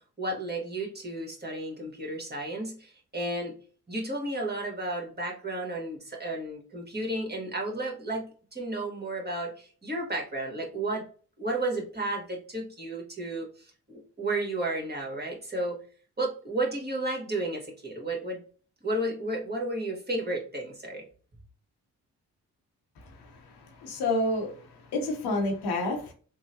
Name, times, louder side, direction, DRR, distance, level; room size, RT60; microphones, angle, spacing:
voice 1, 0.2-3.5 3.9-11.0 11.4-13.5 13.9-15.8 16.2-18.4 18.8-21.0, right 2 dB, 25° right, 1.6 m, -32 dB
voice 2, 23.8-24.6 24.9-26.1, left 2 dB, 85° left, 1.0 m, -28 dB
3.6 x 2.2 x 2.8 m
supercardioid pair, 45°, 38 cm